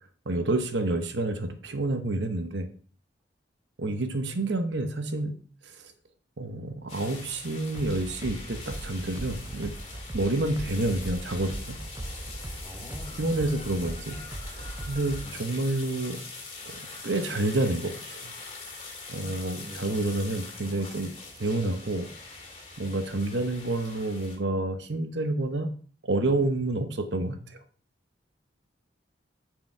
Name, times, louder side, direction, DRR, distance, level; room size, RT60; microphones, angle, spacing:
voice 1, 0.3-2.7 3.8-5.4 5.6-5.9 6.4-9.7 10.1-11.8 13.2-14.2 14.5-16.2 16.6-18.3 19.1-21.1 21.4-22.1 22.8-25.7 26.0-27.4, right 2 dB, 75° right, 7 dB, 0.9 m, -29 dB
sound 1, 6.9-24.4, left 3 dB, 35° left, 2.4 m, -43 dB
sound 2, 7.7-15.3, right 1 dB, 20° right, 0.5 m, -39 dB
voice 2, 12.6-13.5 15.2-15.4 19.6-20.2, equal, ahead, -3 dB, 2.2 m, -45 dB
9.4 x 5.0 x 4.4 m, 0.43 s
head